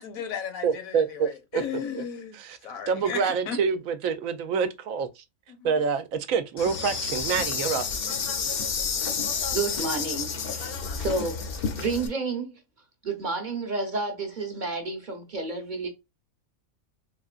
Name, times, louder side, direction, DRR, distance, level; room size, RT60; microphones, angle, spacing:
voice 1, 0.0-2.4 2.6-3.6 5.5-5.7, left 7 dB, 80° left, 1.2 m, -35 dB
voice 2, 0.6-1.6 2.0-2.1 2.3-2.6 2.9-5.2 5.6-7.8, right 6 dB, 75° right, 1.0 m, -27 dB
Insect, 6.6-12.1, left 6 dB, 55° left, 0.7 m, -30 dB
voice 3, 9.3-11.5 11.8-12.6 13.0-15.9, right 3 dB, 40° right, 0.9 m, -31 dB
3.7 x 3.7 x 2.4 m
omnidirectional pair, 1.5 m